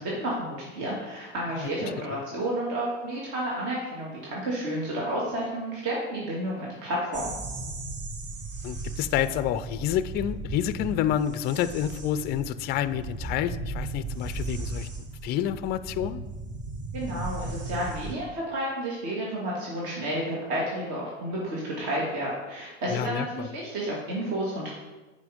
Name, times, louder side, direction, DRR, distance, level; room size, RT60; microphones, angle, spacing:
voice 1, 0.0-7.3 16.9-24.7, right 1 dB, 55° right, -4 dB, 2.4 m, -31 dB
sound 1, 7.1-18.2, right 2 dB, 30° right, 1.2 m, -36 dB
voice 2, 8.6-14.9 15.2-16.2 22.9-23.5, left 11 dB, 30° left, 14 dB, 0.3 m, -28 dB
8.3 x 5.1 x 5.0 m, 1.2 s
hypercardioid pair, 100°, 37 cm